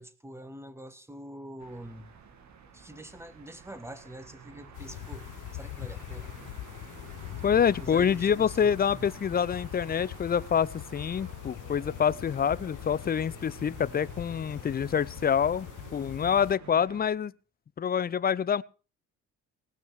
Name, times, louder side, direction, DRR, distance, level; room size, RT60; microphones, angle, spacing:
voice 1, 0.0-2.1 2.7-6.3 7.8-8.7, right 1 dB, 10° right, 1.7 m, -45 dB
sound 1, 1.6-17.1, right 6 dB, 65° right, 2.5 m, -50 dB
sound 2, 4.7-16.6, left 16 dB, 85° left, 0.6 m, -42 dB
Bass guitar, 7.1-11.5 12.1-13.3, left 15 dB, 70° left, 1.9 m, -55 dB
voice 2, 7.4-17.3 17.8-18.6, left 7 dB, 30° left, 0.6 m, -26 dB
19.0 x 6.4 x 6.5 m
cardioid pair, 90°, 30 cm